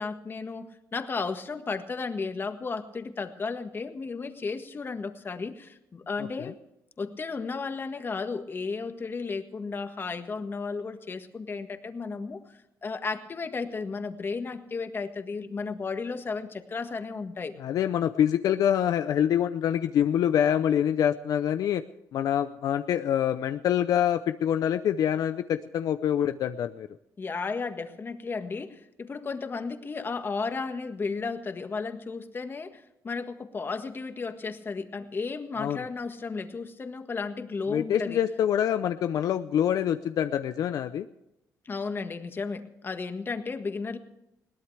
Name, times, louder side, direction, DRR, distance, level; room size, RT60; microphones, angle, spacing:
voice 1, 0.0-6.6 7.0-17.5 27.2-38.2 41.6-44.0, left 4 dB, 35° left, 7 dB, 1.6 m, -34 dB
voice 2, 17.6-21.8 22.1-26.9 35.6-35.9 37.7-41.1, left 10 dB, 70° left, 10 dB, 0.6 m, -25 dB
21.0 x 17.5 x 3.4 m, 0.83 s
cardioid pair, 100°, 6 cm